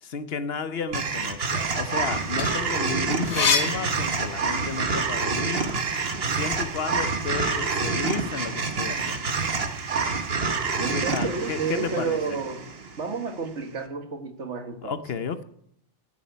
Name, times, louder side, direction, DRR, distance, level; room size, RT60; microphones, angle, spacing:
voice 1, 0.0-5.7 6.3-9.2 10.9-12.4 14.8-15.4, left 6 dB, 65° left, 1.1 m, -32 dB
sound 1, 0.9-13.2, right 4 dB, 60° right, 1.4 m, -27 dB
sound 2, 2.1-4.8 5.2-6.6, left 5 dB, 85° left, 1.5 m, -28 dB
voice 2, 10.8-12.6 13.0-15.0, right 5 dB, 85° right, 1.8 m, -31 dB
10.5 x 8.6 x 9.4 m
omnidirectional pair, 1.2 m